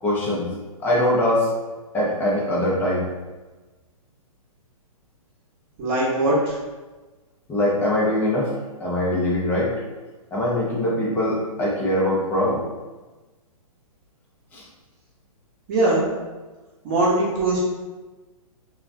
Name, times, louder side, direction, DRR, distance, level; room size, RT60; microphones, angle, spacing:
voice 1, 0.0-0.5 0.8-1.5 1.9-3.1 7.5-8.5 8.8-9.7 10.3-12.6 14.5-14.6, left 1 dB, 10° left, -5 dB, 0.4 m, -22 dB
voice 2, 5.8-6.6 15.7-16.0 16.8-17.6, right 2 dB, 30° right, -5 dB, 0.8 m, -21 dB
2.5 x 2.1 x 2.5 m, 1.2 s
hypercardioid pair, 135°, 19 cm